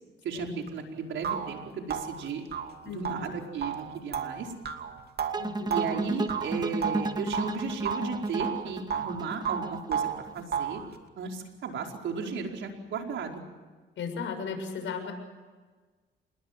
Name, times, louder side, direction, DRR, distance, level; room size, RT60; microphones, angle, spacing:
voice 1, 0.2-2.4 2.8-4.5 5.7-10.1 10.3-10.8 11.2-13.4, right 5 dB, 70° right, 2 dB, 4.8 m, -35 dB
sound 1, 0.7-0.8 1.2-7.5 7.8-9.2 9.4-10.8, right 7 dB, 55° right, 2.6 m, -33 dB
voice 2, 2.8-3.3 5.4-5.8 14.0-15.1, left 5 dB, 75° left, 5 dB, 6.7 m, -36 dB
sound 2, 5.3-10.4, right 2 dB, 20° right, 1.5 m, -33 dB
27.5 x 21.0 x 7.6 m, 1.3 s
cardioid pair, 90°, 20 cm